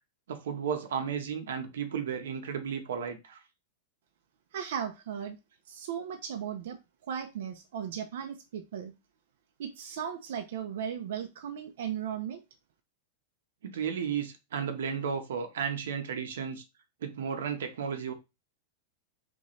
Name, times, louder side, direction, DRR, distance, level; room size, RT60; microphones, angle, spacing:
voice 1, 0.3-3.4 13.6-16.6 17.0-18.1, right 7 dB, 90° right, 1.0 m, -33 dB
voice 2, 4.5-5.4 5.7-6.8 7.1-8.9 9.6-12.4, right 8 dB, 60° right, 0.7 m, -36 dB
4.1 x 3.5 x 3.2 m
supercardioid pair, 175°, 0 cm